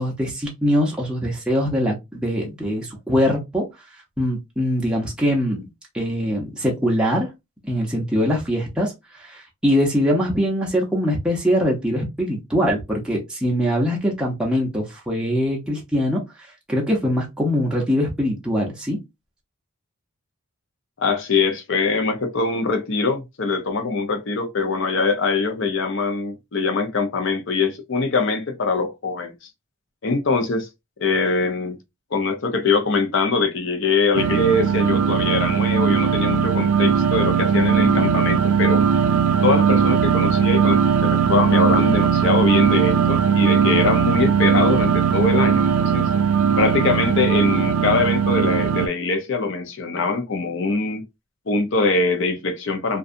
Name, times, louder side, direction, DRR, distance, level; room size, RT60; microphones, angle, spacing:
voice 1, 0.0-3.6 4.2-5.7 5.9-7.3 7.6-8.9 9.2-16.2 16.7-19.0, equal, 5° right, 0.6 m, -22 dB
voice 2, 21.0-29.3 30.0-30.7 31.0-31.8 32.1-38.8 39.4-46.1 46.6-51.0 51.5-53.0, left 3 dB, 55° left, 0.6 m, -22 dB
sound 1, 34.1-48.9, right 7 dB, 75° right, 0.3 m, -19 dB
2.6 x 2.3 x 2.5 m
head